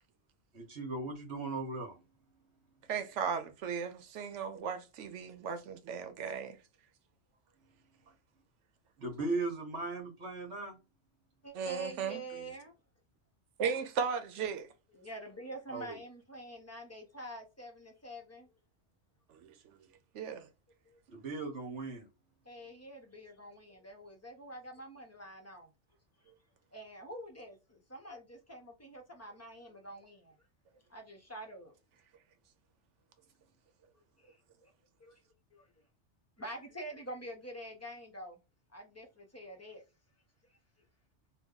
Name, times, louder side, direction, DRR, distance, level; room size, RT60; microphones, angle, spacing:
voice 1, 0.5-2.0 9.0-10.8 15.7-16.0 21.1-22.1, right 3 dB, 70° right, 1.3 m, -37 dB
voice 2, 2.9-6.6 11.5-12.5 13.6-14.7 19.3-19.8 20.1-20.5, right 6 dB, 90° right, 1.0 m, -36 dB
voice 3, 11.4-12.7 15.0-18.5 20.9-21.0 22.4-25.7 26.7-30.3 30.9-31.7 34.2-34.4 34.6-34.7 35.0-35.1 35.5-35.7 36.4-38.4 38.7-39.8, right 1 dB, 15° left, 0.6 m, -46 dB
2.9 x 2.2 x 3.7 m
omnidirectional pair, 1.2 m